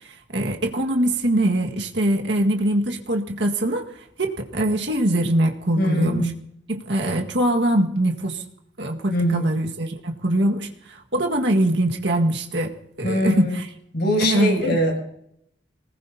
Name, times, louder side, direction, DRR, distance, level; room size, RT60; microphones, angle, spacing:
voice 1, 0.3-3.9 4.2-6.3 6.7-8.4 8.8-13.7 14.2-14.8, right 1 dB, 70° right, 2 dB, 1.8 m, -22 dB
voice 2, 5.7-6.3 9.1-9.5 13.0-13.5 13.9-15.0, equal, 60° left, 0 dB, 7.6 m, -22 dB
26.0 x 19.5 x 2.8 m, 0.74 s
head